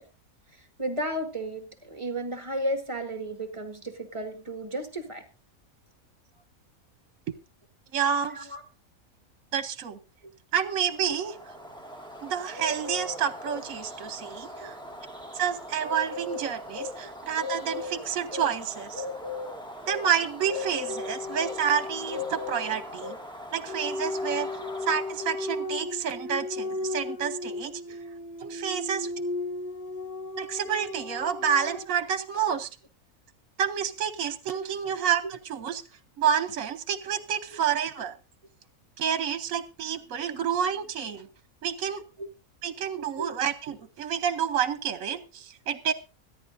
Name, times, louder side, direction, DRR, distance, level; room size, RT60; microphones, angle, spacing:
voice 1, 0.8-5.2 8.3-8.6 14.6-14.7 34.8-34.9 35.2-35.3 37.5-37.6 42.2-42.3 43.2-43.3, right 1 dB, 20° right, 6 dB, 1.7 m, -33 dB
voice 2, 7.9-8.5 9.5-10.0 10.5-11.3 12.2-14.8 15.3-19.0 19.9-23.2 23.5-24.5 24.9-27.8 28.4-29.1 30.4-32.7 33.6-35.8 36.2-38.2 39.0-41.3 41.6-42.0 42.6-45.9, right 8 dB, 70° right, 12 dB, 1.3 m, -29 dB
Bird, 10.9-25.6, left 2 dB, 5° left, 1.8 m, -39 dB
sound 1, 20.9-22.9 23.7-31.8, left 2 dB, 25° left, 1.2 m, -35 dB
24.5 x 10.5 x 2.6 m, 0.30 s
omnidirectional pair, 1.5 m